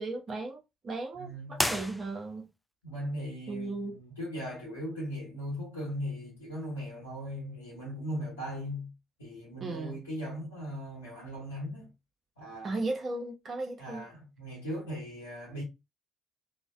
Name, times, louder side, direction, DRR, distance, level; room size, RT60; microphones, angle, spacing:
voice 1, 0.0-2.5 3.5-3.9 9.6-10.0 12.6-14.1, right 2 dB, 45° right, 0.6 m, -36 dB
voice 2, 1.2-1.9 2.8-8.9 9.2-11.9 12.4-12.8 13.8-15.6, equal, 85° left, 1.0 m, -38 dB
sound 1, 1.5-2.6, left 1 dB, 5° left, 0.3 m, -32 dB
2.4 x 2.1 x 2.4 m
figure-of-eight pair, 45°, 0 cm